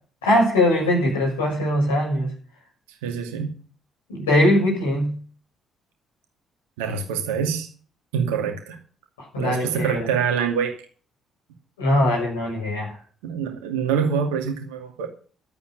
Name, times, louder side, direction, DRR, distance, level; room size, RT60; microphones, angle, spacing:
voice 1, 0.2-2.3 4.1-5.2 9.2-10.1 11.8-13.0, left 1 dB, 75° left, -4 dB, 7.1 m, -21 dB
voice 2, 3.0-3.5 6.8-7.7 8.1-8.8 9.4-10.7 13.2-15.1, right 7 dB, 70° right, 4 dB, 2.4 m, -25 dB
12.5 x 8.3 x 6.7 m, 0.42 s
figure-of-eight pair, 45°, 0 cm